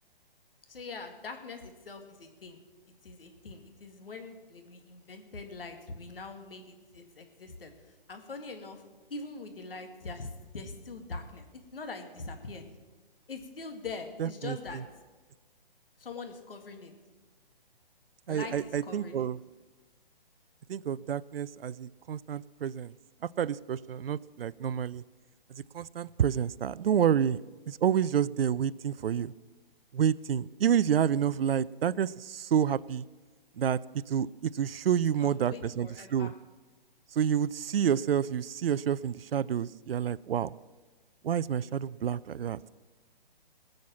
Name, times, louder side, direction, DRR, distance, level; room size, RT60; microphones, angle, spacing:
voice 1, 0.7-2.6 3.0-8.8 9.1-12.7 13.3-14.8 16.0-16.9 18.3-19.3 35.2-36.3, left 3 dB, 70° left, 6 dB, 2.0 m, -43 dB
voice 2, 14.2-14.6 18.3-19.4 20.7-22.9 23.4-25.0 25.5-27.4 27.7-29.3 29.9-33.0 33.6-33.8 34.1-36.3 37.2-40.5 41.2-42.6, right 9 dB, 80° right, 20 dB, 0.5 m, -29 dB
19.0 x 6.5 x 7.2 m, 1.3 s
hypercardioid pair, 145°, 29 cm